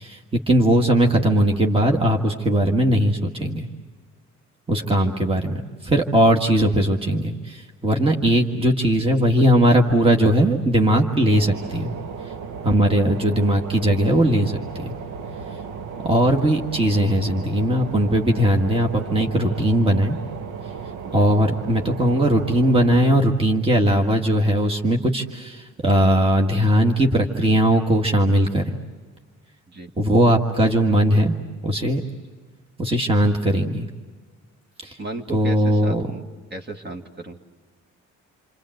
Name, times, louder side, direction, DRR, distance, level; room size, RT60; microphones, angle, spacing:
voice 1, 0.0-3.7 4.7-11.9 12.2-12.3 12.6-15.0 16.0-20.2 21.1-28.8 30.0-31.3 31.6-32.0 32.8-33.9 34.8-35.0 35.3-36.1, right 1 dB, 20° right, 1 dB, 1.7 m, -19 dB
ships control room, 11.3-23.2, right 5 dB, 80° right, 1.0 m, -35 dB
voice 2, 35.0-36.2 36.5-37.4, right 2 dB, 35° right, 4 dB, 2.1 m, -35 dB
29.0 x 25.0 x 7.9 m, 1.4 s
cardioid pair, 90°, 30 cm